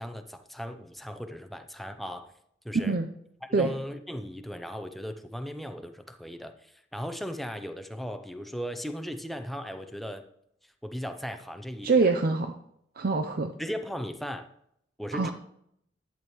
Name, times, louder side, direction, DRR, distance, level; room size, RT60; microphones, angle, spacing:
voice 1, 0.0-2.3 2.6-3.0 3.4-10.2 10.8-12.0 13.6-14.5 15.0-15.3, equal, ahead, 8 dB, 0.6 m, -37 dB
voice 2, 2.7-3.1 3.5-3.7 11.8-12.5 13.0-13.5 15.1-15.3, right 3 dB, 55° right, 6 dB, 0.5 m, -24 dB
11.0 x 8.8 x 3.1 m, 0.73 s
head